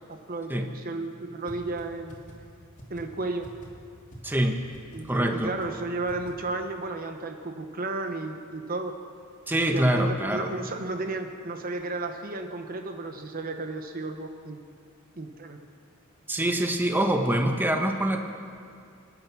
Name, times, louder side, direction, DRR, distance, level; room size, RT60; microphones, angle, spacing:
voice 1, 0.1-2.2 2.9-3.5 4.9-8.9 9.7-14.6 15.1-15.6, right 2 dB, 45° right, 5 dB, 1.0 m, -33 dB
sound 1, 1.5-1.6 1.8-1.9 2.1-2.3 2.8-3.0 3.4-3.7 4.1-4.2 4.4-4.5 4.7-5.0 5.4-5.7 6.1-6.3, right 1 dB, 35° left, 2.7 m, -44 dB
voice 2, 4.2-4.6 5.0-5.5 9.5-10.5 16.3-18.2, right 1 dB, 10° right, 3 dB, 1.1 m, -24 dB
26.0 x 9.0 x 6.1 m, 2.3 s
head